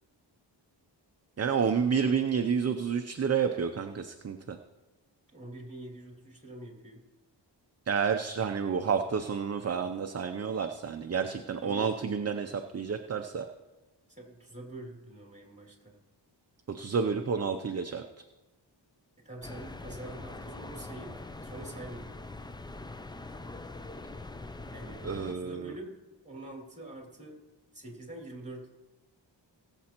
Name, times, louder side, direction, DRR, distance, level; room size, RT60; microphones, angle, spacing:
voice 1, 1.4-4.6 7.9-13.5 16.7-18.0 25.0-25.7, right 6 dB, 35° right, 6 dB, 0.6 m, -30 dB
voice 2, 5.3-7.0 11.6-11.9 14.1-16.0 19.2-22.2 24.7-26.0 26.2-27.4 27.7-28.7, right 1 dB, 15° right, 0 dB, 2.6 m, -45 dB
sound 1, 19.4-25.4, left 2 dB, 10° left, 0.3 m, -43 dB
20.0 x 7.5 x 3.0 m, 1.1 s
wide cardioid pair, 85°, 44 cm